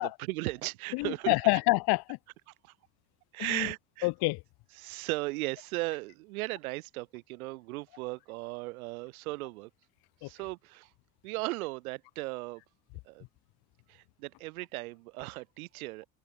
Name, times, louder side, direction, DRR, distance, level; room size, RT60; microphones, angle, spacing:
voice 1, 0.0-1.3 2.6-2.7 3.3-4.1 4.8-9.7 10.2-10.9 11.2-12.6 13.1-13.2 13.9-16.1, right 22 dB, 90° right, 2.5 m, -37 dB
voice 2, 0.9-2.2 3.4-3.7 4.0-4.4 10.2-10.3, left 23 dB, 60° left, 0.8 m, -27 dB
open air
supercardioid pair, 100°, 42 cm